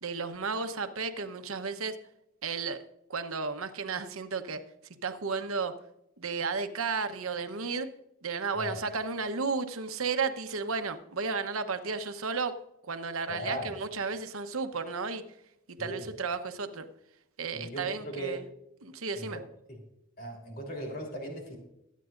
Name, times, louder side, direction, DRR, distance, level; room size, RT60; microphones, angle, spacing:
voice 1, 0.0-2.0 2.4-2.8 3.1-4.6 5.0-5.7 6.2-7.9 8.2-12.6 12.8-15.2 15.7-16.9 17.4-18.4 18.8-19.4, right 4 dB, 85° right, 8 dB, 1.0 m, -33 dB
voice 2, 13.3-13.7 15.8-16.1 17.5-18.4 19.1-19.4 19.7-19.8 20.2-21.6, equal, 45° left, 1 dB, 3.6 m, -38 dB
22.5 x 9.2 x 2.5 m, 0.83 s
head